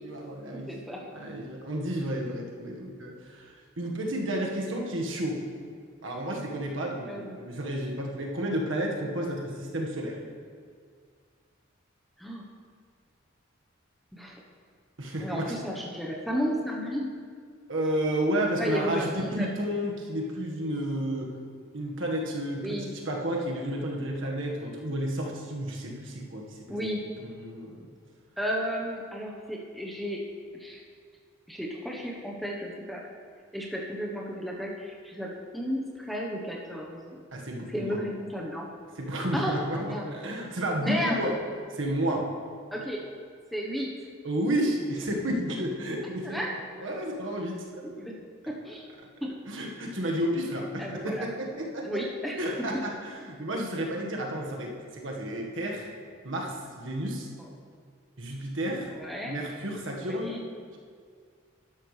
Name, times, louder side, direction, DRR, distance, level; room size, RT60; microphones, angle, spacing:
voice 1, 0.0-0.7 1.1-5.4 6.0-10.2 15.0-15.6 17.7-21.3 21.7-22.8 23.1-26.6 27.2-27.8 37.3-38.0 39.0-41.3 41.7-42.2 44.2-46.4 46.8-47.8 49.5-52.0 52.4-55.9 56.2-57.3 58.2-58.9 59.2-60.4, right 1 dB, 70° right, 0 dB, 1.6 m, -31 dB
voice 2, 0.5-1.1 7.0-7.3 12.2-12.4 14.1-14.3 15.2-17.1 18.6-19.5 22.6-22.9 26.7-27.0 28.4-30.3 30.6-30.8 31.5-33.1 33.5-37.2 37.7-38.7 39.3-40.1 40.8-41.3 42.7-43.0 43.5-43.9 46.2-46.5 47.8-48.2 48.5-48.9 49.2-49.4 50.8-51.3 51.8-52.9 57.4-57.5 58.9-59.4 60.0-60.4, equal, ahead, -2 dB, 1.0 m, -33 dB
12.5 x 10.5 x 3.3 m, 2.1 s
head